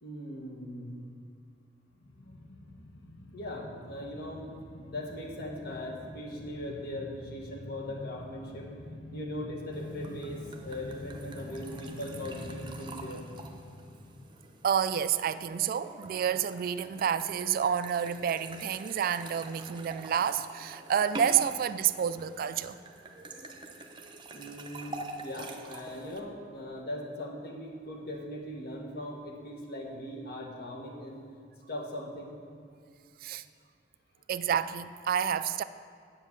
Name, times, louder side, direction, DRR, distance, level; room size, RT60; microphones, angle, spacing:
voice 1, 0.0-1.1 3.3-4.5 4.9-8.7 9.1-13.2 24.3-31.2 31.7-32.4, left 1 dB, 60° left, 1.7 m, -40 dB
sound 1, 1.9-15.2 15.5-15.6, left 1 dB, 75° left, 1.0 m, -46 dB
sound 2, 9.7-26.2, right 2 dB, 25° right, 0.8 m, -46 dB
voice 2, 14.6-22.8 33.2-33.4 34.3-35.6, right 8 dB, 50° right, 0.3 m, -29 dB
8.7 x 7.3 x 7.4 m
head